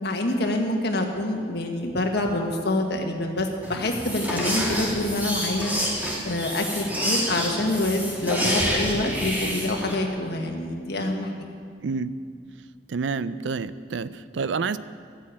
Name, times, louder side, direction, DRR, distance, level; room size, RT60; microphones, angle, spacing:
voice 1, 0.0-5.7 6.2-11.3, left 1 dB, 65° left, 2 dB, 1.6 m, -26 dB
sound 1, 3.6-10.0, equal, 10° right, 2.5 m, -28 dB
voice 2, 11.8-12.1 12.9-14.8, right 5 dB, 75° right, 15 dB, 0.5 m, -28 dB
13.0 x 8.5 x 8.6 m, 2.1 s
head